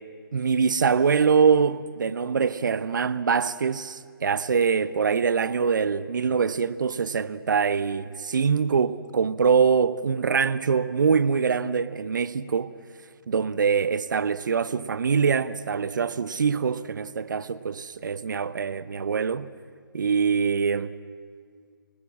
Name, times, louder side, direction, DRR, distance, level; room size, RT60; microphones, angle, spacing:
voice 1, 0.3-12.7 13.3-19.5 19.9-20.9, right 6 dB, 55° right, 0.9 m, -24 dB
27.5 x 19.0 x 7.5 m
figure-of-eight pair, 150°, 12 cm